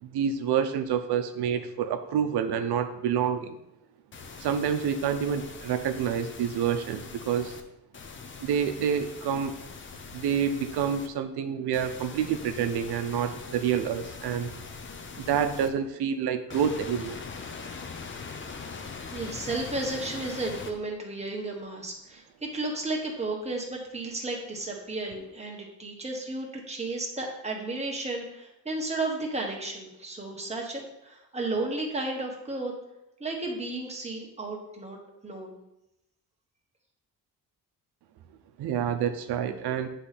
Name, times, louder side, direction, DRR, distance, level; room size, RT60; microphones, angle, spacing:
voice 1, 0.0-3.6 4.4-7.6 8.4-9.5 10.1-14.5 15.2-17.2 38.6-39.9, right 8 dB, 90° right, 8 dB, 0.7 m, -28 dB
sound 1, 4.1-7.6 7.9-11.1 11.7-15.7 16.5-20.7, left 5 dB, 30° left, 0.6 m, -42 dB
voice 2, 19.1-32.7 33.2-35.0 35.2-35.6, right 2 dB, 15° right, -1 dB, 1.4 m, -33 dB
9.7 x 3.3 x 4.1 m, 0.86 s
cardioid pair, 135°, 38 cm